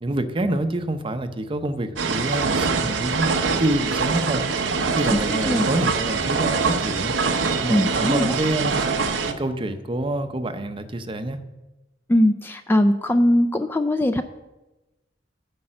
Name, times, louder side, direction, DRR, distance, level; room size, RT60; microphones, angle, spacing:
voice 1, 0.0-3.3 3.6-4.4 4.8-7.1 7.6-8.7 9.3-11.4, right 1 dB, 30° right, 9 dB, 0.6 m, -26 dB
sound 1, 2.0-9.3, right 4 dB, 85° right, 0.9 m, -24 dB
voice 2, 5.1-5.7 7.7-8.4 12.1-14.2, left 1 dB, 10° left, 8 dB, 0.3 m, -20 dB
9.8 x 5.4 x 7.7 m, 1.0 s
head